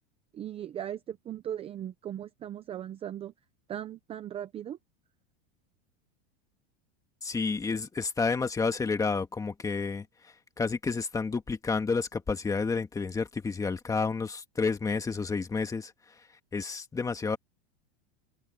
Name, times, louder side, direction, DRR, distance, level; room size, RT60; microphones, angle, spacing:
voice 1, 0.3-3.3 3.7-4.8, right 10 dB, 15° right, 0.7 m, -38 dB
voice 2, 7.2-10.1 10.6-15.9 16.5-17.4, left 4 dB, 10° left, 1.7 m, -30 dB
supercardioid pair, 160°, 33 cm